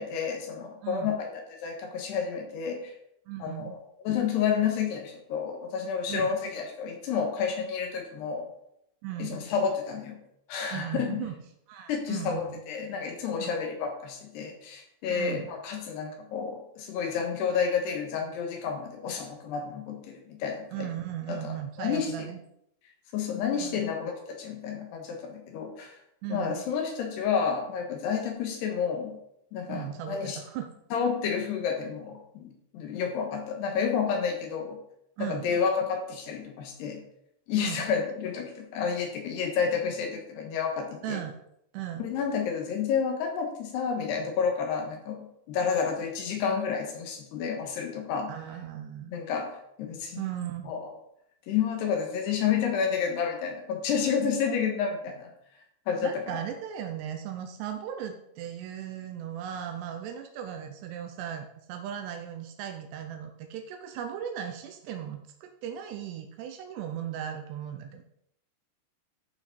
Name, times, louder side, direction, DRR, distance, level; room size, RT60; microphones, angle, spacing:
voice 1, 0.0-2.9 3.4-3.8 4.0-8.5 9.2-10.2 10.5-11.3 11.9-20.9 21.3-22.3 23.1-25.9 26.3-29.2 29.5-30.4 30.9-34.8 35.2-37.0 37.5-41.2 42.0-48.3 49.1-50.2 50.7-50.9 51.5-55.3 55.9-56.4, left 6 dB, 80° left, 2 dB, 3.3 m, -30 dB
voice 2, 0.8-1.1 3.3-3.8 6.1-6.3 9.0-9.5 10.7-11.3 11.7-12.5 13.3-13.5 15.1-15.4 20.7-22.4 23.6-23.8 26.2-26.6 29.7-30.7 35.2-35.5 37.6-37.8 41.0-41.4 41.7-42.0 48.3-49.1 50.2-50.7 56.0-68.0, right 10 dB, 85° right, 5 dB, 2.9 m, -37 dB
14.0 x 5.9 x 4.4 m, 0.76 s
omnidirectional pair, 4.9 m